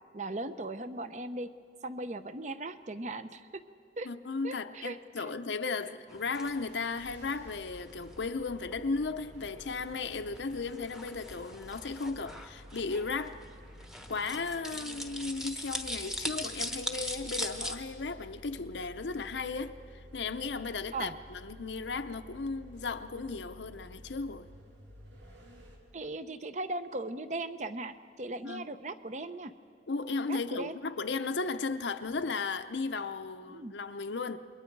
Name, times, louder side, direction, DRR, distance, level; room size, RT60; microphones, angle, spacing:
voice 1, 0.1-1.5 1.8-3.4 4.0-4.1 4.4-5.2 20.9-21.1 25.9-29.5 30.3-30.8 33.5-33.7, right 2 dB, 40° right, 0.7 m, -38 dB
voice 2, 4.0-13.4 14.1-24.5 28.4-28.7 29.9-34.4, left 4 dB, 80° left, 0.8 m, -35 dB
sound 1, 6.1-17.8, left 1 dB, 5° right, 1.0 m, -41 dB
sound 2, 6.4-25.8, equal, 85° right, 3.2 m, -52 dB
28.0 x 22.0 x 4.7 m
head